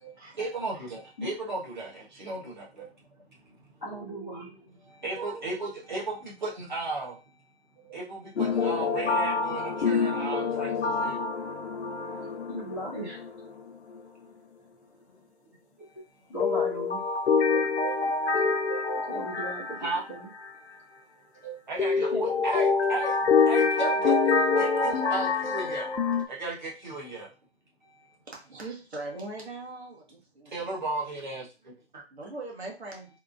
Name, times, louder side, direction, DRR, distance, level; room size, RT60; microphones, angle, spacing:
voice 1, 0.4-2.8 4.9-7.2 7.9-11.2 19.8-20.0 21.7-23.2 23.5-25.9 26.3-27.3 30.5-32.0, right 3 dB, 45° right, -3 dB, 1.2 m, -35 dB
voice 2, 3.8-4.5 5.1-5.5 7.8-8.0 8.4-8.5 11.0-11.1 12.1-13.2 15.8-15.9 16.3-17.0 17.5-20.3 21.1-22.4, right 2 dB, ahead, -16 dB, 0.7 m, -39 dB
sound 1, 8.4-13.7 13.9-14.0 16.4-20.5 21.8-26.2, left 4 dB, 80° left, 0.6 m, -26 dB
voice 3, 28.3-30.8 32.1-33.1, right 2 dB, 75° right, -1 dB, 1.6 m, -40 dB
3.6 x 2.5 x 2.5 m, 0.31 s
hypercardioid pair, 170°, 33 cm